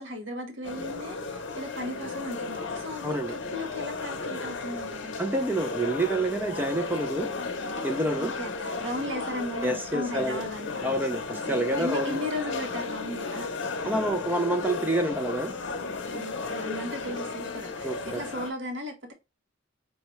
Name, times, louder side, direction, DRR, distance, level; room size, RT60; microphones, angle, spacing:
voice 1, 0.0-5.1 8.2-10.9 11.3-13.5 16.1-19.1, left 1 dB, 60° right, 0.8 m, -36 dB
sound 1, 0.6-18.5, left 4 dB, 60° left, 0.7 m, -34 dB
voice 2, 3.0-3.4 5.2-7.3 7.8-8.3 9.6-10.4 10.8-12.2 13.8-15.5 17.8-18.2, right 1 dB, 10° right, 0.4 m, -28 dB
5.5 x 2.2 x 3.0 m
head